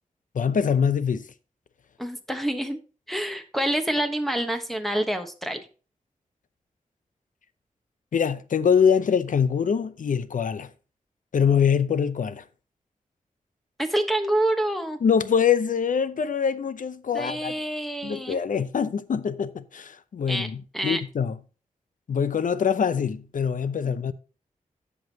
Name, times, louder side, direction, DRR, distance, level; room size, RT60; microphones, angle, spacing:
voice 1, 0.3-1.3 8.1-10.7 11.3-12.4 15.0-17.5 18.0-21.3 22.1-24.1, left 7 dB, 70° left, 0.6 m, -24 dB
voice 2, 2.0-2.8 3.1-5.6 13.8-15.0 17.1-18.4 20.3-20.5 20.7-21.0 23.8-24.0, right 1 dB, ahead, 1.2 m, -27 dB
15.5 x 5.5 x 2.8 m
wide cardioid pair, 90°, 14 cm